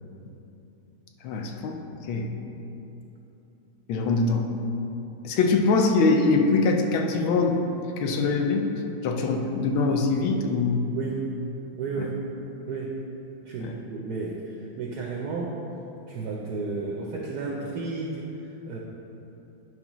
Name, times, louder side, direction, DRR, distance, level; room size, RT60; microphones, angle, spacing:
voice 1, 1.2-1.8 2.1-2.3 3.9-4.5 5.2-7.6 8.0-8.7 9.0-10.8 12.0-12.1 13.6-13.7, left 3 dB, 80° left, 3 dB, 1.5 m, -23 dB
voice 2, 10.9-11.3 11.8-12.2 12.7-13.0 13.4-15.6 16.1-18.3 18.7-18.8, right 4 dB, 65° right, -1 dB, 1.0 m, -32 dB
9.6 x 5.8 x 3.0 m, 3.0 s
omnidirectional pair, 2.2 m